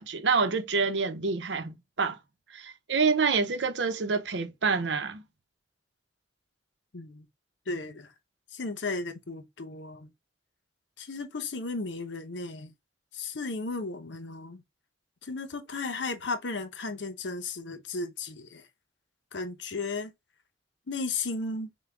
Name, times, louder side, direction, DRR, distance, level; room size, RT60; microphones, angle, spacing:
voice 1, 0.0-2.2 2.5-5.2, right 4 dB, 70° right, 0.7 m, -27 dB
voice 2, 6.9-7.3 7.7-8.1 8.5-10.1 11.0-12.7 13.1-14.6 15.2-18.7 19.3-20.1 20.9-21.7, left 3 dB, 75° left, 0.8 m, -35 dB
5.9 x 2.2 x 3.3 m
head